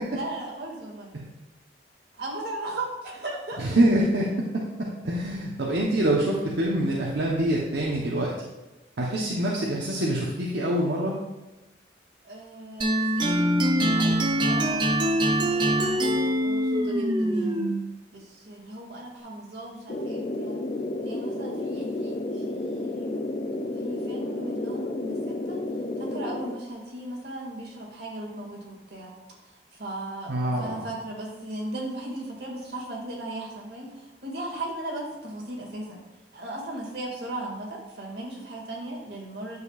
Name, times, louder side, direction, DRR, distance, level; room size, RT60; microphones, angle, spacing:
voice 1, 0.1-1.1 2.2-3.8 9.1-9.5 12.2-14.8 15.2-17.7 18.1-20.6 21.0-23.3 23.8-25.6 26.0-29.2 29.5-36.0 36.3-39.6, right 1 dB, 60° right, -3 dB, 2.2 m, -37 dB
voice 2, 3.8-4.3 5.0-8.3 9.0-11.1 30.3-30.8, right 1 dB, 80° right, -4 dB, 1.0 m, -25 dB
sound 1, 12.8-17.9, right 1 dB, 25° right, 0.6 m, -23 dB
sound 2, 19.9-26.6, left 2 dB, 40° left, 0.4 m, -31 dB
9.7 x 6.7 x 2.5 m, 1.0 s
head